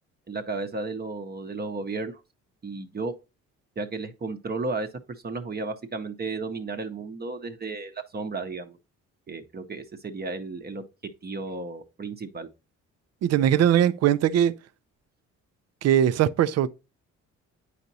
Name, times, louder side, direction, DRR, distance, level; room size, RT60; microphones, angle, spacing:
voice 1, 0.3-2.2 2.6-3.1 3.8-8.8 9.3-10.8 11.2-12.5, right 3 dB, 30° right, 0.8 m, -33 dB
voice 2, 13.2-14.5 15.8-16.7, right 10 dB, 60° right, 0.5 m, -20 dB
8.1 x 5.0 x 2.7 m
cardioid pair, 90°, 30 cm